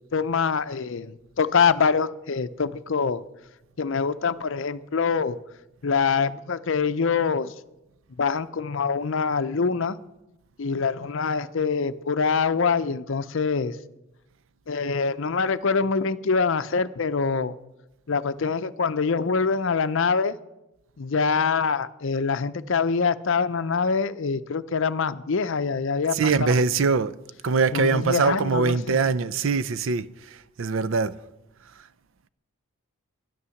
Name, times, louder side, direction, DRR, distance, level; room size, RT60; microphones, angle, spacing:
voice 1, 0.1-3.2 3.8-5.4 5.8-7.5 8.2-10.0 10.6-13.8 14.7-17.6 18.1-20.4 21.0-26.5 27.7-29.0, left 5 dB, 60° left, 0.6 m, -24 dB
voice 2, 26.1-27.2 27.4-31.1, right 4 dB, 60° right, 0.5 m, -23 dB
12.5 x 10.5 x 7.1 m
head